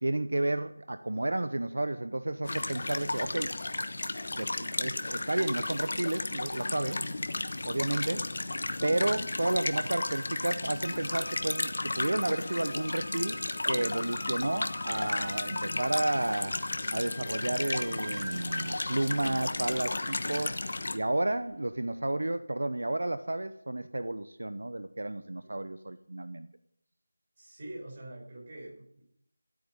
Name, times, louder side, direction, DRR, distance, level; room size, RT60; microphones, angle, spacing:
voice 1, 0.0-3.5 4.3-7.0 7.6-8.3 8.8-13.4 13.7-16.6 16.9-20.6 20.9-26.5, right 1 dB, 75° right, 11 dB, 0.8 m, -31 dB
sound 1, 2.4-21.0, left 2 dB, 55° left, 1.1 m, -34 dB
sound 2, 8.6-21.6, left 1 dB, 15° left, 1.7 m, -47 dB
Wind instrument woodwind instrument, 10.8-16.3, left 2 dB, 75° left, 0.8 m, -44 dB
voice 2, 25.2-25.6 27.4-29.0, right 1 dB, 30° right, -1 dB, 4.7 m, -45 dB
13.0 x 8.9 x 5.4 m, 0.71 s
figure-of-eight pair, 175°, 0 cm